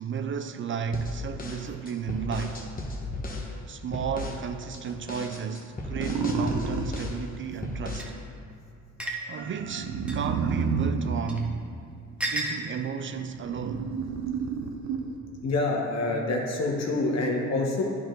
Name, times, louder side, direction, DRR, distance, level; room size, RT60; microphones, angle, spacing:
voice 1, 0.0-2.7 3.7-8.2 9.0-11.9 12.2-14.0, right 7 dB, 40° right, 0.4 m, -33 dB
sound 1, 0.9-3.5 3.9-4.4 4.7-7.2 7.6-8.1, left 2 dB, 30° left, 1.1 m, -35 dB
sound 2, 6.0-7.0 9.3-12.1 12.8-15.3, right 5 dB, 70° right, 0.8 m, -30 dB
sound 3, 8.0-8.1 9.0-9.2 10.1-10.2 11.3-11.4 12.2-12.6, right 1 dB, 5° right, 1.1 m, -31 dB
voice 2, 15.4-17.8, left 2 dB, 60° left, 1.3 m, -26 dB
9.9 x 4.7 x 3.9 m
cardioid pair, 90°, 30 cm